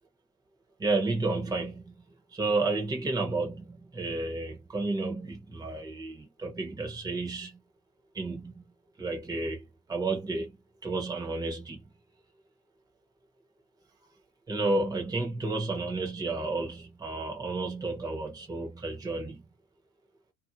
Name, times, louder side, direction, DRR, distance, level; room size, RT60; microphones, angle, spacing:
voice 1, 0.8-2.0 2.3-7.6 8.1-8.7 9.0-10.6 10.8-11.8 14.5-19.4, right 3 dB, 10° right, 1.1 m, -31 dB
2.8 x 2.4 x 2.4 m
cardioid pair, 140°, 34 cm